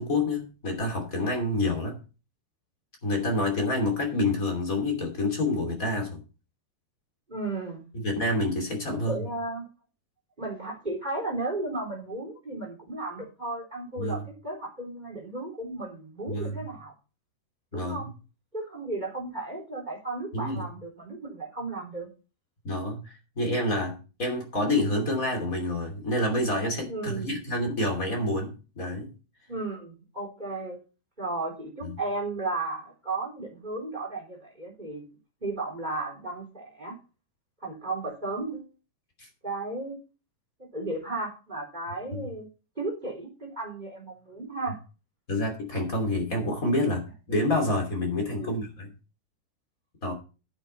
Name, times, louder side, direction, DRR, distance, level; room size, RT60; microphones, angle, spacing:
voice 1, 0.0-2.0 3.0-6.2 7.9-9.2 14.0-14.2 16.3-16.6 17.7-18.0 20.3-20.7 22.6-29.1 31.8-31.9 39.2-39.3 42.1-42.3 45.3-48.9 50.0-50.1, left 1 dB, 25° left, 2 dB, 2.4 m, -28 dB
voice 2, 7.3-7.8 8.9-9.6 10.4-16.9 17.7-18.1 18.5-22.1 26.9-27.4 29.5-30.8 31.2-35.0 35.4-36.9 37.6-38.7 39.4-40.0 40.7-42.5 42.7-44.8 48.4-48.6, right 2 dB, 10° right, 1 dB, 3.3 m, -34 dB
11.5 x 8.7 x 4.3 m, 0.32 s
omnidirectional pair, 5.0 m